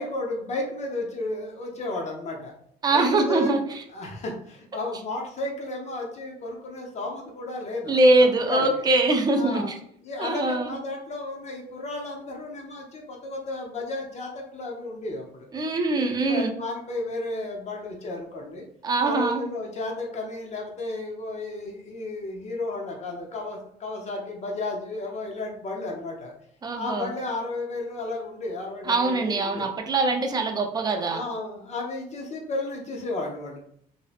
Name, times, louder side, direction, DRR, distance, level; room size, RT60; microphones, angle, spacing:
voice 1, 0.0-2.5 2.9-3.6 3.9-8.7 9.4-9.7 10.0-15.5 16.0-18.7 19.0-26.3 26.7-29.7 30.9-33.6, left 2 dB, 40° left, 0 dB, 0.6 m, -33 dB
voice 2, 2.8-3.8 7.9-9.8 10.2-10.7 15.5-16.5 18.8-19.5 26.6-27.1 28.8-31.2, right 2 dB, 25° right, 4 dB, 0.4 m, -23 dB
2.6 x 2.0 x 2.4 m, 0.66 s
cardioid pair, 110°, 17 cm